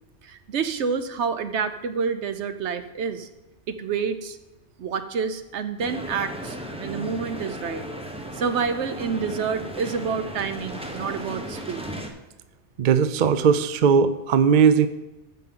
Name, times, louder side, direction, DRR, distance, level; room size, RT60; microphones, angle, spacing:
voice 1, 0.2-3.3 3.7-4.4 4.8-7.8 8.3-11.9, right 6 dB, 75° right, 9 dB, 1.0 m, -28 dB
sound 1, 5.8-12.1, equal, 5° right, 0.9 m, -35 dB
voice 2, 12.8-14.9, right 6 dB, 55° right, 12 dB, 0.6 m, -18 dB
14.5 x 5.8 x 3.8 m, 1.0 s
omnidirectional pair, 1.2 m